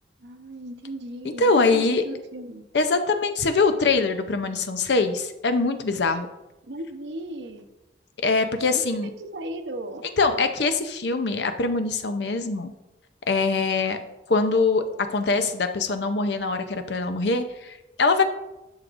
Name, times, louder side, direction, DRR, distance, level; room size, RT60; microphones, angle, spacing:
voice 1, 0.2-2.6 6.7-7.6 8.7-10.0, right 1 dB, 80° right, 5 dB, 0.8 m, -36 dB
voice 2, 1.4-2.0 2.7-6.3 8.2-9.1 10.2-12.7 13.3-14.0 14.3-14.8 15.1-18.2, left 3 dB, 75° left, 8 dB, 0.6 m, -23 dB
11.5 x 6.4 x 2.5 m, 0.98 s
head